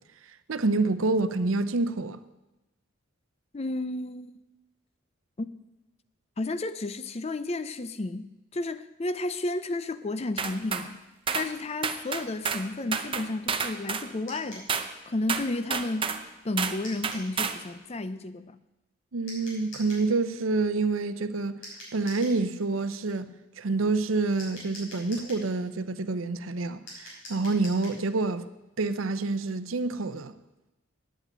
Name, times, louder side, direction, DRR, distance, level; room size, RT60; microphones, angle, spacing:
voice 1, 0.5-2.2 19.1-21.5 21.9-23.3 23.6-28.4 28.8-30.3, right 3 dB, 85° right, 0.7 m, -27 dB
voice 2, 3.5-4.3 5.4-5.5 6.4-11.0 11.3-14.7 15.0-18.6, left 2 dB, 30° left, 0.5 m, -32 dB
sound 1, 10.4-10.9 11.3-11.5 11.8-12.7 12.9-14.1 14.7-14.9 15.3-16.2 16.6-16.8 17.0-17.6, right 6 dB, 25° right, 0.6 m, -29 dB
sound 2, 14.3-14.7 16.8-17.3 19.3-20.1 21.6-22.4 24.4-25.5 26.9-28.0, left 1 dB, 70° left, 6.0 m, -44 dB
9.3 x 8.3 x 9.1 m
head